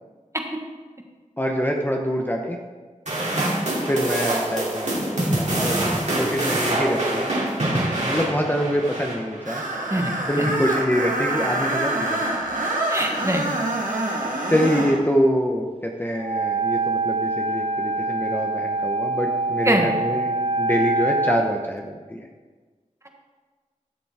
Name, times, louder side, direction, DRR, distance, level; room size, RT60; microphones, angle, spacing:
voice 1, 1.4-2.6 3.9-7.3 8.1-9.6 10.3-12.2 14.5-20.3 20.6-22.3, equal, 15° left, 1 dB, 0.9 m, -25 dB
sound 1, 3.1-9.6, right 1 dB, 60° right, 2.5 m, -25 dB
Screech, 9.5-15.0, right 1 dB, 90° right, 1.5 m, -26 dB
voice 2, 9.9-10.6 12.9-13.5 19.6-20.0, right 1 dB, 20° right, 2 dB, 1.4 m, -24 dB
Wind instrument woodwind instrument, 16.2-21.5, right 3 dB, 45° right, 0.6 m, -25 dB
13.0 x 6.9 x 3.6 m, 1.4 s
wide cardioid pair, 55°, 13 cm